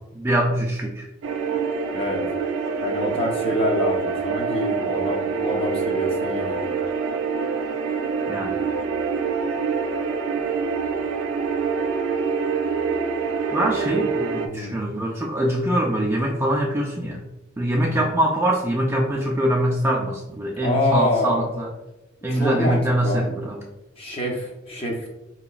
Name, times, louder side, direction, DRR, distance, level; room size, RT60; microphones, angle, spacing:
voice 1, 0.1-1.0 8.3-8.5 13.5-17.2 17.6-21.7 22.2-23.6, right 1 dB, 15° right, -1 dB, 0.3 m, -23 dB
sound 1, 1.2-14.5, right 5 dB, 90° right, 0.4 m, -25 dB
voice 2, 1.9-2.2 2.8-6.7 13.9-14.0 14.4-14.7 17.8-18.1 20.6-21.5 22.3-23.3 24.0-25.1, left 1 dB, 30° left, -1 dB, 0.6 m, -26 dB
4.1 x 2.9 x 2.3 m, 0.97 s
head